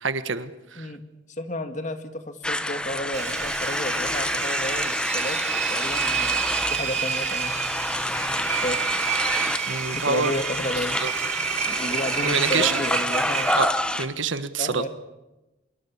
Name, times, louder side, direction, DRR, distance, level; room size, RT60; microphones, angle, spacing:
voice 1, 0.0-0.9 9.7-10.3 11.0-11.1 12.2-12.8 13.6-13.7 14.0-14.9, right 5 dB, 80° right, 12 dB, 1.4 m, -26 dB
voice 2, 1.4-6.5 6.7-7.5 8.4-9.0 9.9-11.0 11.7-13.5 14.6-14.9, left 1 dB, 40° left, 8 dB, 1.9 m, -32 dB
sound 1, 2.4-14.1, left 1 dB, 5° left, 0.9 m, -28 dB
Engine, 3.1-14.0, right 8 dB, 35° right, 1.5 m, -29 dB
25.0 x 23.0 x 7.1 m, 1.0 s
head